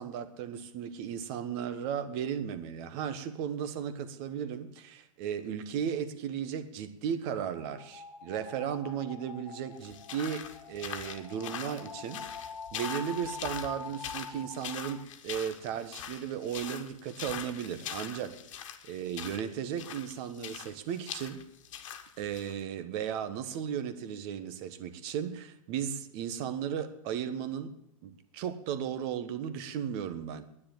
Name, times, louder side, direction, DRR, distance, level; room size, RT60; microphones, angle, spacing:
voice 1, 0.0-21.4 22.2-30.4, right 8 dB, 45° right, 1.3 m, -36 dB
sound 1, 7.3-15.0, left 6 dB, 85° left, 1.0 m, -45 dB
sound 2, 9.8-22.6, left 9 dB, 65° left, 1.4 m, -43 dB
10.0 x 9.8 x 8.9 m
hypercardioid pair, 105°, 18 cm